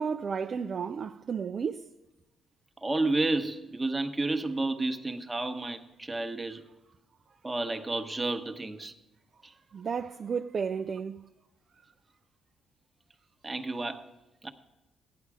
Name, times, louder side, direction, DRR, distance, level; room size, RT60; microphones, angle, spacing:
voice 1, 0.0-1.9 9.7-11.2, right 6 dB, 45° right, 0.4 m, -32 dB
voice 2, 2.8-6.6 7.4-8.9 9.4-9.5 13.4-14.0 14.4-14.5, right 2 dB, 20° right, 1.1 m, -31 dB
15.0 x 10.0 x 4.8 m
cardioid pair, 90°, 0 cm